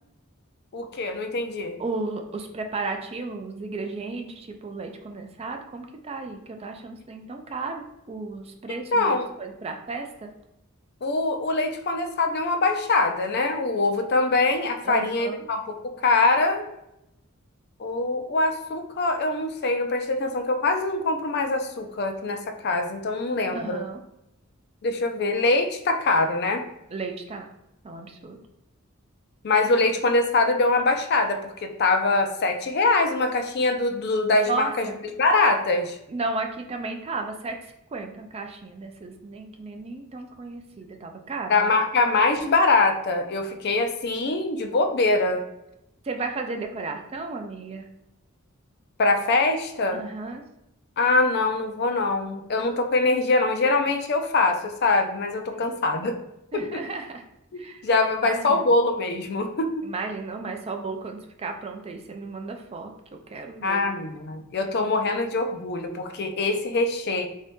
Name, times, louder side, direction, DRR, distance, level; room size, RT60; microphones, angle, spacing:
voice 1, 0.7-1.8 8.9-9.3 11.0-16.6 17.8-23.8 24.8-26.6 29.4-34.9 35.2-36.0 41.5-45.4 49.0-50.0 51.0-56.1 56.5-56.8 57.5-59.9 63.6-67.3, left 3 dB, 50° left, 6 dB, 0.4 m, -23 dB
voice 2, 1.8-10.3 14.8-15.3 23.5-24.0 26.9-27.5 27.8-28.4 34.5-35.0 36.1-37.6 37.9-41.7 46.0-47.9 49.9-50.4 55.5-55.8 56.5-57.2 57.6-57.8 58.2-58.6 59.8-63.8, right 3 dB, 30° right, 4 dB, 0.4 m, -34 dB
3.8 x 2.7 x 3.4 m, 0.85 s
head